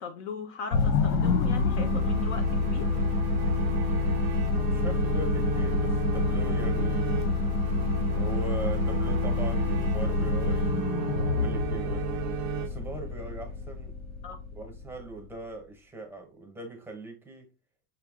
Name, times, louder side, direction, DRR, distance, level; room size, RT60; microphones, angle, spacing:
voice 1, 0.0-3.0 14.2-14.4, left 6 dB, 45° left, 0.6 m, -39 dB
sound 1, 0.7-15.2, left 3 dB, 85° left, 1.1 m, -27 dB
sound 2, 1.8-13.3, right 9 dB, 35° right, 0.4 m, -36 dB
voice 2, 4.6-7.3 8.1-10.7 11.2-12.0 12.6-13.9 14.5-17.5, right 2 dB, 5° right, 0.8 m, -40 dB
5.7 x 2.3 x 3.5 m
supercardioid pair, 160°, 48 cm